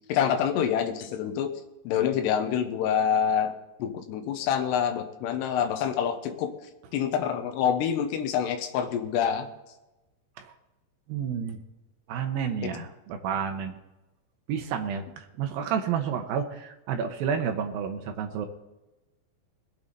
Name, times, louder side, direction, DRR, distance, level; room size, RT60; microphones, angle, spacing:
voice 1, 0.1-1.5 1.8-3.5 3.8-6.5 6.9-9.5 12.6-12.7, left 8 dB, 70° left, 6 dB, 3.1 m, -26 dB
voice 2, 11.1-11.6 12.1-13.8 14.5-18.5, right 7 dB, 80° right, 5 dB, 2.1 m, -30 dB
21.0 x 8.5 x 4.0 m, 1.0 s
omnidirectional pair, 5.5 m